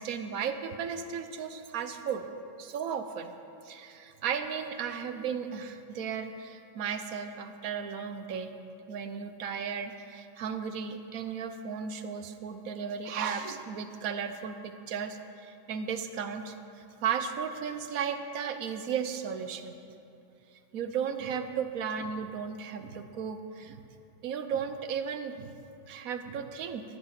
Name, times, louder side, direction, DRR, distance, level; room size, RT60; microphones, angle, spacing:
voice 1, 0.0-2.2 2.6-3.3 3.7-8.5 8.9-16.5 17.0-19.7 20.7-23.8 24.2-25.5 25.9-26.8, right 7 dB, 60° right, 8 dB, 1.0 m, -35 dB
13.5 x 10.0 x 5.9 m, 2.7 s
omnidirectional pair, 1.9 m